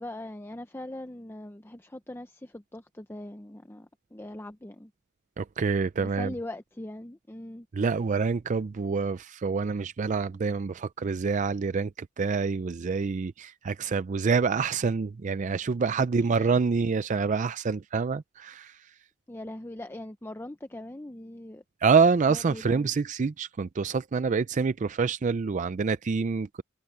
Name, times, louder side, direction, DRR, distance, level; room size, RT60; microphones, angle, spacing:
voice 1, 0.0-4.9 6.0-7.7 16.3-16.5 19.3-21.6 22.3-22.9, left 1 dB, 10° left, 0.6 m, -41 dB
voice 2, 5.4-6.3 7.7-18.9 21.8-26.6, right 5 dB, 35° right, 0.4 m, -27 dB
head